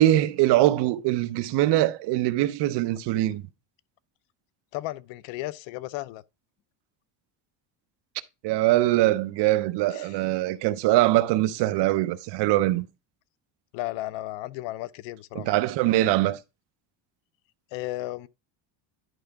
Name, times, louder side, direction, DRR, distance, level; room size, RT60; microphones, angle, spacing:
voice 1, 0.0-3.4 8.4-12.9 15.3-16.4, right 15 dB, 60° right, 0.8 m, -22 dB
voice 2, 4.7-6.2 9.9-10.1 13.7-15.6 17.7-18.3, left 17 dB, 75° left, 0.7 m, -34 dB
11.0 x 4.7 x 3.5 m
cardioid pair, 160°, 46 cm